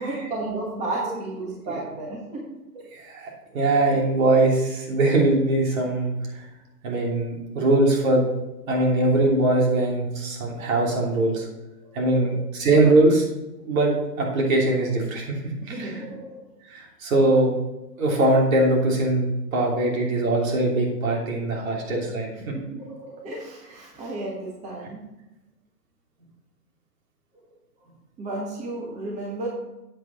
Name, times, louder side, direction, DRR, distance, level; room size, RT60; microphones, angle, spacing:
voice 1, 0.0-2.4 2.7-2.8 12.1-12.4 15.7-16.5 17.3-17.5 19.6-19.8 22.4-25.0 28.2-29.5, right 2 dB, 15° right, -3 dB, 1.3 m, -33 dB
voice 2, 2.9-6.5 6.8-8.3 8.7-11.5 11.9-13.2 13.7-16.0 16.7-17.6 18.0-22.5, right 2 dB, 55° right, -2 dB, 3.2 m, -22 dB
8.0 x 8.0 x 4.4 m, 0.99 s
hypercardioid pair, 135°, 49 cm